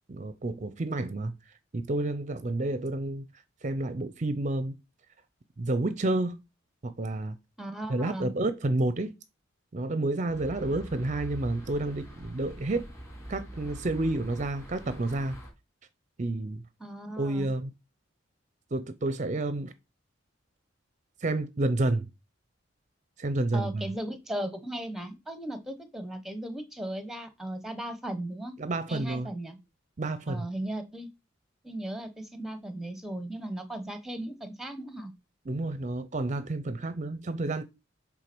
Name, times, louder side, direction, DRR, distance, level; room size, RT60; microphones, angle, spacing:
voice 1, 0.1-1.4 1.7-3.2 3.6-4.8 5.6-6.4 6.8-7.4 7.9-9.1 9.7-12.9 13.3-15.4 16.2-16.6 17.2-17.7 18.7-19.7 21.2-22.1 23.2-23.9 28.6-29.3 30.0-30.5 35.5-37.6, right 2 dB, 40° right, 0.6 m, -30 dB
voice 2, 7.6-8.3 16.8-17.5 23.5-28.5 28.9-29.6 30.3-31.1 31.6-35.1, right 1 dB, ahead, 1.0 m, -37 dB
sound 1, 10.3-15.5, equal, 15° left, 2.8 m, -44 dB
8.0 x 3.6 x 6.1 m
head